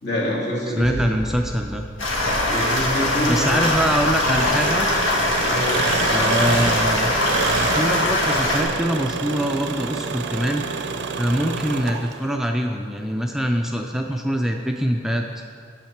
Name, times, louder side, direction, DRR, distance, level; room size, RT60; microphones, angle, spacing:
voice 1, 0.0-1.1 2.5-3.6 5.4-5.7, equal, 60° left, -5 dB, 2.1 m, -25 dB
voice 2, 0.7-1.9 3.3-4.9 6.1-7.1 7.7-10.6 11.2-15.3, equal, ahead, 2 dB, 0.3 m, -24 dB
sound 1, 0.8-6.2 6.7-7.3, equal, 25° left, 1.0 m, -39 dB
sound 2, 2.0-8.6, left 1 dB, 85° left, 1.6 m, -22 dB
Engine, 4.2-12.4, right 4 dB, 65° right, 0.5 m, -27 dB
8.7 x 7.2 x 4.5 m, 2.1 s
head